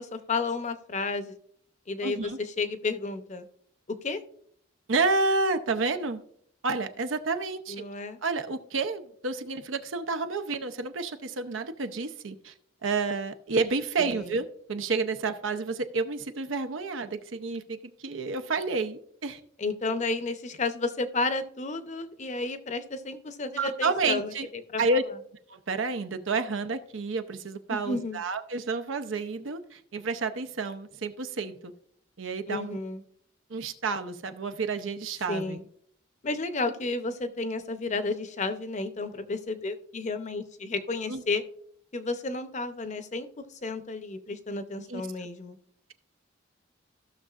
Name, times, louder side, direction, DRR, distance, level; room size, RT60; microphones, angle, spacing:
voice 1, 0.0-1.3 1.9-3.4 3.9-4.2 7.7-8.2 14.0-14.3 19.6-24.3 24.7-24.8 27.7-28.2 32.5-33.0 35.3-35.6 36.2-41.4 41.9-45.6, left 3 dB, 40° left, 9 dB, 0.7 m, -32 dB
voice 2, 2.0-2.4 4.9-6.2 6.6-7.8 8.2-12.5 12.8-19.4 23.6-24.5 24.8-25.0 25.5-31.7 32.2-32.8 33.5-35.6 41.1-41.2 44.9-45.0, right 3 dB, 80° right, 10 dB, 0.7 m, -30 dB
15.0 x 6.3 x 2.4 m, 0.65 s
head